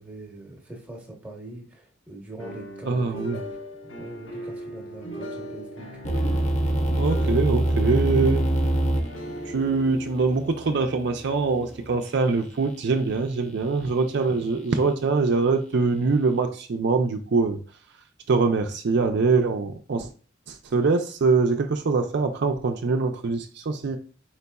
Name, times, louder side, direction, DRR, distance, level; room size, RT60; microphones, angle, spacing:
voice 1, 0.0-3.6 4.0-5.9, right 2 dB, 10° right, 0 dB, 0.9 m, -42 dB
sound 1, 2.4-12.3, right 1 dB, 70° left, 1.1 m, -39 dB
voice 2, 2.8-3.4 7.0-8.4 9.4-17.6 18.3-20.1 20.5-24.0, right 4 dB, 60° right, 5 dB, 0.4 m, -23 dB
sound 2, 6.0-12.0, right 1 dB, 35° left, 0.6 m, -25 dB
4.4 x 4.0 x 2.2 m, 0.38 s
head